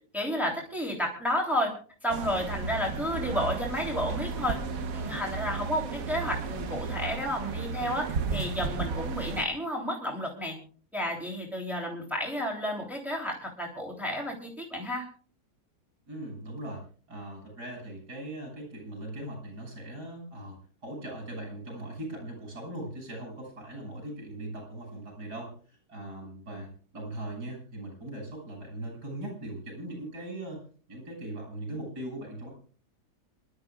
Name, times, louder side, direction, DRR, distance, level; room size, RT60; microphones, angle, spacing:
voice 1, 0.1-1.7 2.0-4.6 4.9-10.6 10.9-15.1, equal, ahead, -1 dB, 3.3 m, -31 dB
sound 1, 2.1-9.4, right 5 dB, 60° right, 1.4 m, -34 dB
voice 2, 16.1-20.6 20.8-30.6 30.9-32.5, right 1 dB, 85° right, 0 dB, 7.4 m, -40 dB
27.0 x 12.5 x 2.4 m, 0.42 s
omnidirectional pair, 1.7 m